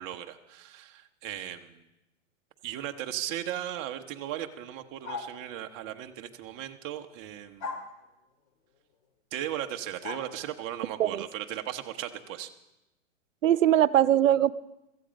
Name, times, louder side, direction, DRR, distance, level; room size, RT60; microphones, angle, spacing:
voice 1, 0.0-1.8 2.6-7.8 9.3-12.5, right 11 dB, 25° right, 5 dB, 0.9 m, -37 dB
sound 1, 5.0-5.4 7.6-7.9 10.0-10.3, left 4 dB, 40° left, 2.3 m, -36 dB
voice 2, 13.4-14.5, right 11 dB, 85° right, 17 dB, 0.7 m, -21 dB
16.5 x 14.5 x 5.2 m, 0.92 s
hypercardioid pair, 150°, 38 cm